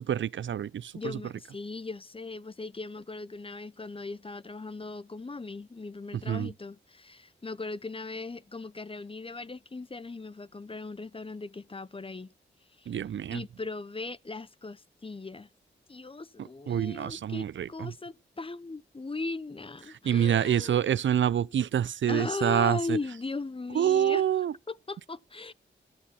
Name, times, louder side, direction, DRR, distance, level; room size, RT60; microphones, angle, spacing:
voice 1, 0.0-0.9 6.3-6.5 12.9-13.4 16.7-17.9 20.0-23.0 23.7-24.5, right 9 dB, 75° right, 0.6 m, -26 dB
voice 2, 0.9-12.3 12.8-12.9 13.3-15.5 15.9-21.0 22.1-24.2 24.7-25.5, left 3 dB, 25° left, 0.8 m, -38 dB
14.5 x 10.5 x 4.3 m
cardioid pair, 45°, 20 cm